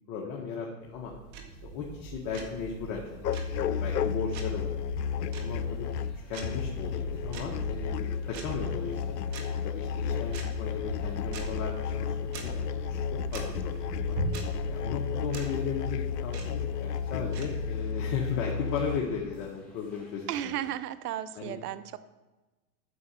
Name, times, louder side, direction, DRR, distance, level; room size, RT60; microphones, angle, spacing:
voice 1, 0.1-1.1 1.6-3.2 3.6-4.7 5.2-5.9 6.3-9.2 9.6-14.1 14.7-20.5 21.4-21.6, left 6 dB, 40° left, -2 dB, 1.8 m, -36 dB
sound 1, 0.8-17.8, right 3 dB, 40° right, 1.9 m, -41 dB
sound 2, 3.2-19.0, left 7 dB, 90° left, 0.7 m, -32 dB
sound 3, 5.5-20.7, left 1 dB, ahead, 3.4 m, -58 dB
voice 2, 20.3-22.0, right 11 dB, 75° right, 14 dB, 0.9 m, -34 dB
9.6 x 7.0 x 6.9 m, 1.1 s
hypercardioid pair, 130°, 47 cm